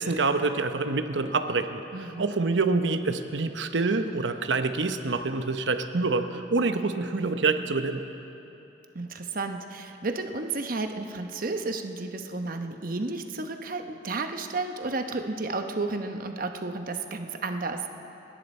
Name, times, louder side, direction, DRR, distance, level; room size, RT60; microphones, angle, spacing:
voice 1, 0.0-1.8 2.2-8.0, right 3 dB, 85° right, 8 dB, 0.8 m, -26 dB
voice 2, 1.9-2.3 8.9-17.9, right 3 dB, 50° right, 6 dB, 0.9 m, -32 dB
29.0 x 10.5 x 4.3 m, 3.0 s
head